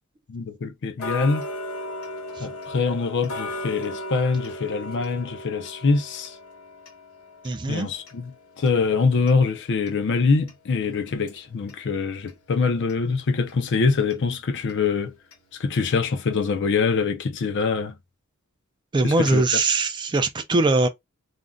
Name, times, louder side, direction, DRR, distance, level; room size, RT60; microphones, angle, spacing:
voice 1, 0.3-1.5 2.4-6.4 7.7-15.1 15.6-17.9 19.0-19.4, left 4 dB, 55° left, 0.5 m, -24 dB
Tick-tock, 1.0-11.8 12.3-12.4 12.9-13.0 13.5-13.6 14.1-14.2 14.7-14.8 15.3-15.4 15.9-16.0, left 1 dB, 80° left, 1.0 m, -37 dB
voice 2, 7.4-7.9 18.9-20.9, right 3 dB, 20° right, 0.3 m, -21 dB
2.5 x 2.1 x 3.6 m
head